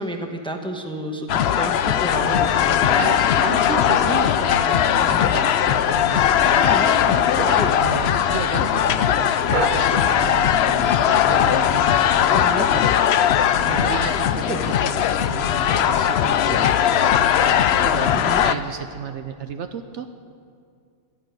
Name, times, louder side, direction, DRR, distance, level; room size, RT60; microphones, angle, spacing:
voice 1, 0.0-3.4 3.7-4.0 5.0-5.3 6.5-7.8 12.3-12.7 14.5-14.6 18.1-18.4, right 1 dB, 5° left, 3 dB, 1.0 m, -31 dB
sound 1, 1.3-18.5, left 9 dB, 65° left, 0.7 m, -19 dB
voice 2, 3.0-6.8 7.4-20.1, right 7 dB, 65° right, 8 dB, 0.9 m, -33 dB
sound 2, 5.0-5.4 5.9-6.3 6.8-7.8 8.2-8.4 8.8-8.9 9.5-10.4 12.3-12.8 13.7-14.4 15.2-15.4 15.7-17.0 17.3-17.7 18.2-18.3, right 4 dB, 40° right, 1.0 m, -32 dB
12.0 x 11.0 x 9.3 m, 2.2 s
omnidirectional pair, 1.4 m